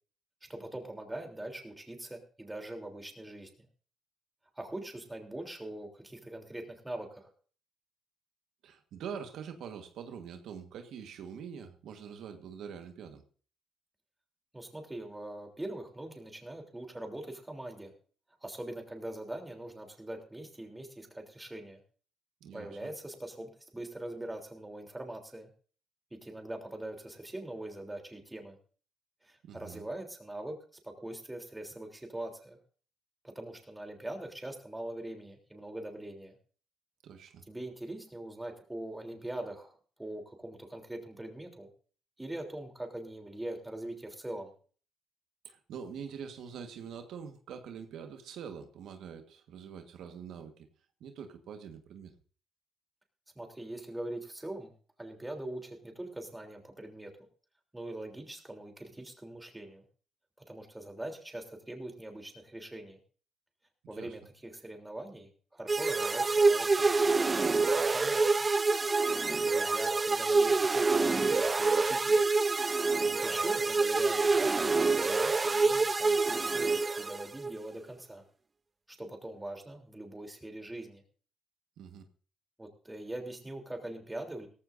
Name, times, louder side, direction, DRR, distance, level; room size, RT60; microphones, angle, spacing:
voice 1, 0.4-3.5 4.5-7.3 14.5-17.9 18.4-21.8 22.5-25.5 26.1-28.6 29.2-30.6 30.8-32.6 33.2-36.3 37.5-39.7 40.0-41.7 42.2-44.5 53.3-54.7 55.0-57.1 57.7-59.8 60.5-63.0 63.9-68.5 69.1-72.2 73.2-78.3 78.9-81.0 82.6-84.5, right 1 dB, 10° right, 3 dB, 3.3 m, -42 dB
voice 2, 8.6-13.2 22.4-22.9 29.4-29.8 37.0-37.4 45.4-50.7 51.0-52.1 63.8-64.1 73.0-73.3 81.8-82.0, right 7 dB, 80° right, 6 dB, 1.5 m, -45 dB
sound 1, 65.7-77.5, right 3 dB, 25° right, 0.6 m, -27 dB
17.5 x 14.5 x 2.6 m, 0.41 s
cardioid pair, 90°, 0 cm